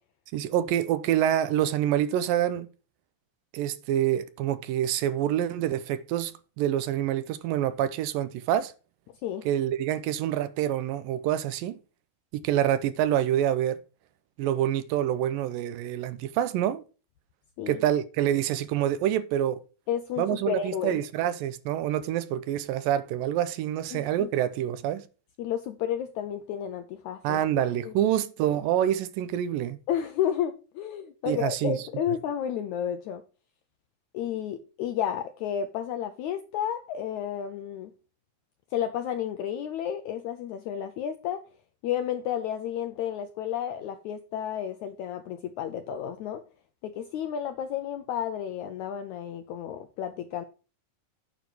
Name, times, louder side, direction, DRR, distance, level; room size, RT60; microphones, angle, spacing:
voice 1, 0.3-2.7 3.5-8.7 9.5-11.8 12.3-13.8 14.4-16.8 17.7-19.6 20.2-25.0 27.2-29.8 31.3-31.8, right 11 dB, 80° right, 2.3 m, -27 dB
voice 2, 19.9-21.0 23.9-24.3 25.4-27.4 27.8-28.1 29.9-33.2 34.1-37.9 38.7-41.4 41.8-46.4 46.8-50.4, left 9 dB, 85° left, 1.7 m, -32 dB
9.3 x 5.0 x 6.1 m
omnidirectional pair, 4.1 m